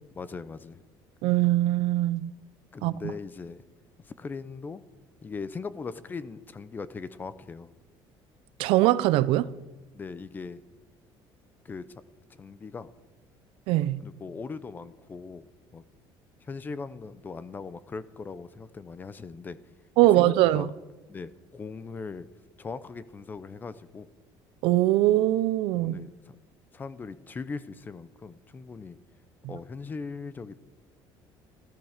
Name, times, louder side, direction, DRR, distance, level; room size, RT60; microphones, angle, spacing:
voice 1, 0.1-0.8 2.7-3.6 4.0-4.8 5.2-7.7 9.9-10.6 11.6-12.0 12.4-12.9 14.0-15.8 16.4-19.6 20.2-20.7 21.1-22.3 22.6-24.1 25.7-26.4 26.7-29.0 29.5-30.5, left 4 dB, 20° left, 0.7 m, -39 dB
voice 2, 1.2-2.3 2.8-2.9 8.6-9.5 13.7-14.0 20.0-20.7 24.6-26.1, right 15 dB, 75° right, 0.6 m, -22 dB
14.0 x 14.0 x 6.5 m
cardioid pair, 155°, 9 cm